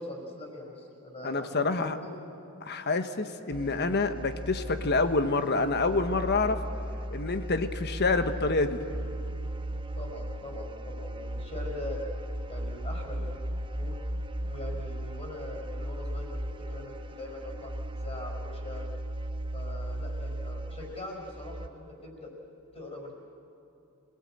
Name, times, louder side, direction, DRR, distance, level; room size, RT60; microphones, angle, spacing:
voice 1, 0.0-2.1 9.9-12.0 12.5-13.4 13.7-14.0 14.5-16.4 16.7-18.8 19.5-22.3 22.7-23.1, left 2 dB, 30° left, -2 dB, 5.1 m, -42 dB
voice 2, 1.2-2.0 2.6-6.6 7.1-8.8, left 3 dB, 50° left, 9 dB, 1.2 m, -27 dB
sound 1, 3.5-21.7, right 1 dB, 25° right, 0.8 m, -36 dB
26.5 x 19.0 x 8.9 m, 2.7 s
head